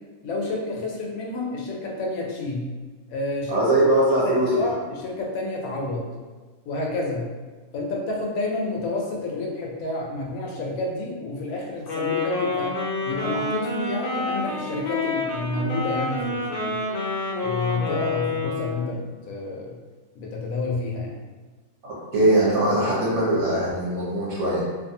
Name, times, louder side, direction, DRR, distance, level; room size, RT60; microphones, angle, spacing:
voice 1, 0.2-2.7 3.1-3.6 4.2-6.1 6.7-7.3 7.7-12.7 13.1-16.8 17.4-19.8 20.1-21.2, left 2 dB, 75° left, -2 dB, 1.0 m, -29 dB
voice 2, 3.5-4.7 21.8-24.6, right 1 dB, 60° right, -6 dB, 1.0 m, -21 dB
Wind instrument woodwind instrument, 11.8-19.0, left 3 dB, 55° left, 0.6 m, -28 dB
2.6 x 2.5 x 2.6 m, 1.3 s
omnidirectional pair, 1.5 m